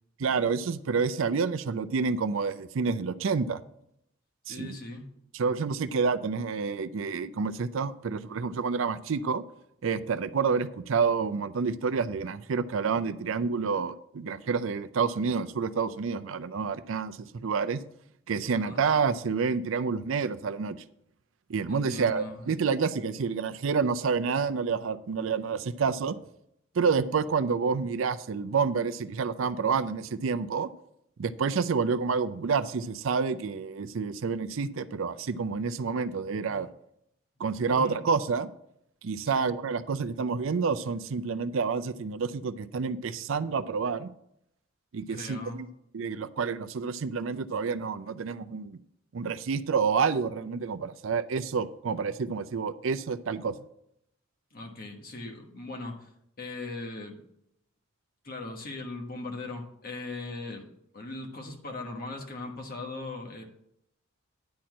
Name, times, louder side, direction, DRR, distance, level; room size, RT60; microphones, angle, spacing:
voice 1, 0.2-3.6 4.5-4.8 5.3-9.4 9.8-17.8 18.3-20.8 21.5-26.2 26.7-30.7 31.2-36.7 37.4-38.5 39.0-44.1 44.9-45.7 45.9-48.8 49.1-53.6, right 5 dB, 65° right, 13 dB, 0.5 m, -28 dB
voice 2, 4.5-5.1 18.5-18.8 21.7-22.5 36.5-36.6 37.7-38.0 39.2-39.5 45.1-45.6 54.5-56.1 56.4-57.2 58.2-60.6 60.9-63.4, left 2 dB, 45° left, 1 dB, 1.5 m, -39 dB
10.5 x 4.4 x 7.4 m, 0.76 s
head